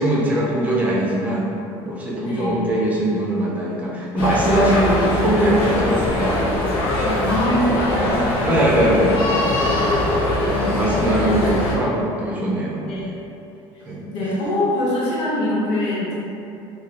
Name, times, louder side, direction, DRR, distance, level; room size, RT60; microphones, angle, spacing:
voice 1, 0.0-1.5 1.9-6.4 7.0-7.3 8.4-9.7 10.4-13.1 13.9-14.0, right 1 dB, 15° right, -5 dB, 0.6 m, -21 dB
voice 2, 2.2-2.7 7.3-8.4 10.3-11.1 12.8-13.1 14.1-16.2, left 1 dB, 90° left, -8 dB, 1.2 m, -24 dB
sound 1, 4.2-11.8, left 1 dB, 70° left, 0.8 m, -22 dB
3.1 x 2.4 x 4.1 m, 2.8 s
cardioid pair, 140°, 10 cm